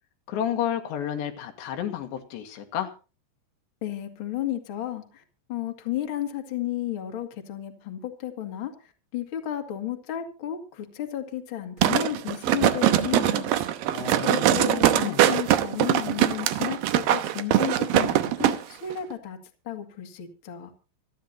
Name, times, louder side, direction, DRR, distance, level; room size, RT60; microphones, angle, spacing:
voice 1, 0.3-2.9 13.9-15.3, left 10 dB, 85° left, 4 dB, 3.9 m, -31 dB
voice 2, 3.8-5.2 5.5-13.5 14.2-19.4 19.6-20.7, left 12 dB, 40° left, 3 dB, 2.1 m, -33 dB
sound 1, 11.8-18.6 18.9-19.0, right 12 dB, 75° right, 2.3 m, -22 dB
26.5 x 10.5 x 2.8 m, 0.34 s
omnidirectional pair, 4.9 m